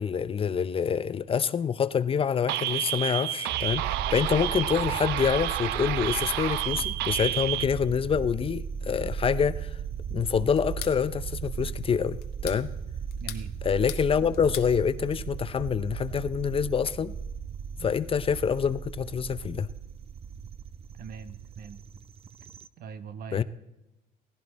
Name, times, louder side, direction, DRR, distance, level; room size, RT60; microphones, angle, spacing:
voice 1, 0.0-9.7 10.1-12.7 13.6-17.1 17.8-19.7 23.3-23.4, left 7 dB, 35° left, 15 dB, 0.5 m, -26 dB
sound 1, 2.5-7.6, right 14 dB, 90° right, 0.5 m, -30 dB
sound 2, 3.5-22.7, right 7 dB, 35° right, 0.6 m, -37 dB
sound 3, 10.6-11.0 12.2-12.6 13.1-14.1 14.3-14.7, left 11 dB, 70° left, 1.1 m, -39 dB
voice 2, 13.2-13.5 17.8-17.9 21.0-21.8 22.8-23.4, right 6 dB, 60° right, 11 dB, 1.1 m, -40 dB
17.0 x 15.5 x 4.1 m, 0.94 s
cardioid pair, 110°, 17 cm